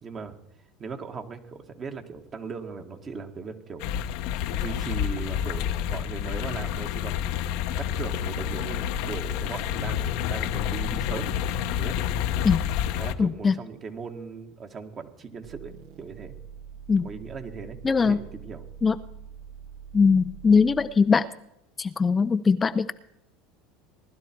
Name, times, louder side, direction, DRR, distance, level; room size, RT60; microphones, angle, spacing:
voice 1, 0.0-0.3 0.8-4.0 4.5-7.3 7.8-11.3 11.6-12.0 12.9-15.7 16.0-16.3 17.0-18.6, right 5 dB, 35° right, 5 dB, 1.8 m, -38 dB
sound 1, 3.8-13.1, left 9 dB, 70° left, 0.9 m, -29 dB
voice 2, 13.2-13.6 16.9-17.1 17.8-18.2 18.8-19.0 19.9-21.2 21.8-22.9, left 5 dB, 25° left, 11 dB, 0.5 m, -21 dB
sound 2, 15.4-21.0, right 7 dB, 65° right, 1.2 m, -44 dB
19.0 x 11.5 x 4.6 m, 0.81 s
supercardioid pair, 95°, 0 cm